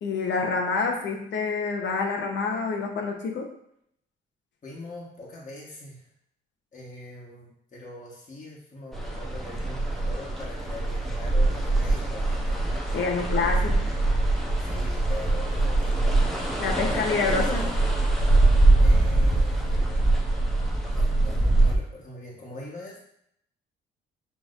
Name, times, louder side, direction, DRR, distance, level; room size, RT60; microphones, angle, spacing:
voice 1, 0.0-3.5 12.9-13.9 16.6-17.7, left 4 dB, 65° left, 2 dB, 1.0 m, -27 dB
voice 2, 4.6-6.0 6.7-12.6 14.6-17.8 18.8-19.8 20.9-23.0, left 1 dB, 40° left, -4 dB, 1.4 m, -42 dB
sound 1, 8.9-21.8, right 2 dB, ahead, 0.9 m, -23 dB
6.3 x 3.3 x 2.6 m, 0.72 s
cardioid pair, 90°, 20 cm